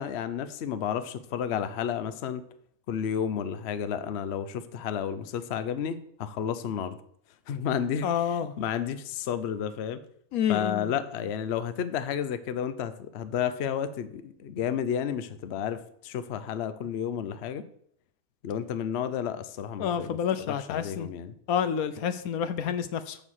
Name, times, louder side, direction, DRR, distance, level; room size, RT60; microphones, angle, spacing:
voice 1, 0.0-2.4 2.9-7.0 7.5-10.0 10.5-17.6 18.4-21.3, left 8 dB, 55° left, 12 dB, 0.8 m, -31 dB
voice 2, 8.0-8.5 10.3-10.9 19.8-21.1 21.5-23.2, left 8 dB, 75° left, 12 dB, 1.1 m, -28 dB
7.0 x 6.3 x 7.4 m, 0.67 s
omnidirectional pair, 1.6 m